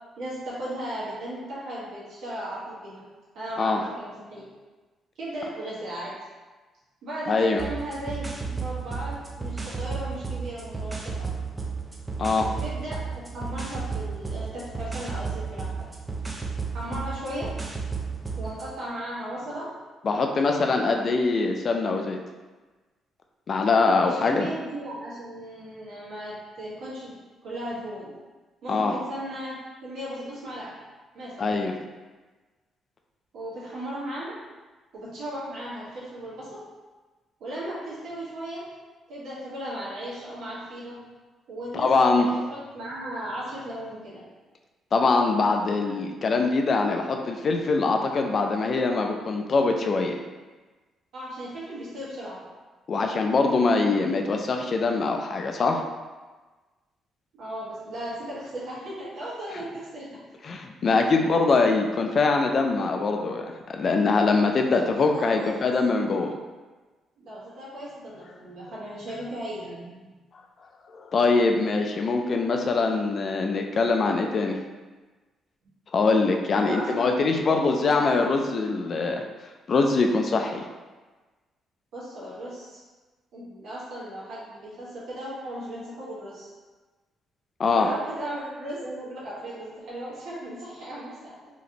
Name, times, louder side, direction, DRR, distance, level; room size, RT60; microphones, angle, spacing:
voice 1, 0.2-3.0 3.3-4.4 5.2-6.1 7.0-11.3 12.5-15.7 16.7-17.5 18.4-19.7 20.3-20.8 23.9-28.1 28.6-30.7 31.1-31.5 33.3-34.4 34.9-36.6 37.4-38.6 39.1-41.0 41.5-41.9 42.2-44.2 51.1-52.4 57.4-60.2 64.6-65.7 67.2-70.1 76.5-78.5 81.9-82.8 83.3-86.5 87.7-91.3, right 1 dB, 75° right, -8 dB, 1.4 m, -36 dB
voice 2, 7.3-7.6 12.2-12.5 20.0-22.2 23.5-24.5 28.7-29.0 31.4-31.7 41.7-42.3 44.9-50.2 52.9-55.8 60.4-66.3 70.9-74.6 75.9-79.2 79.7-80.6 87.6-87.9, left 3 dB, 45° left, 3 dB, 0.3 m, -23 dB
sound 1, 7.6-18.7, right 4 dB, 20° right, 0.4 m, -33 dB
3.0 x 2.5 x 2.8 m, 1.3 s
cardioid pair, 90°, 0 cm